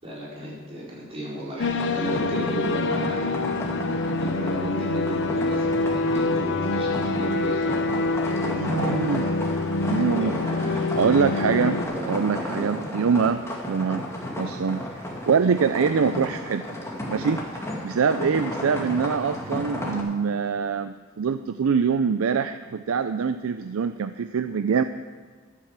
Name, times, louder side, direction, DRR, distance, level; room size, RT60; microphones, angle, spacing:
voice 1, 0.0-3.3 4.2-8.2 10.2-10.8 11.9-12.1 12.3-12.9, right 1 dB, 30° right, -6 dB, 4.6 m, -34 dB
sound 1, 1.6-11.8, left 3 dB, 60° left, 0.8 m, -26 dB
sound 2, 1.8-20.0, left 1 dB, 15° left, 2.1 m, -34 dB
voice 2, 8.4-9.4 9.8-10.4 11.0-11.8 12.1-14.1 14.4-14.9 15.3-16.6 17.1-24.8, right 6 dB, 80° right, 11 dB, 0.4 m, -24 dB
12.5 x 9.0 x 7.4 m, 1.5 s
head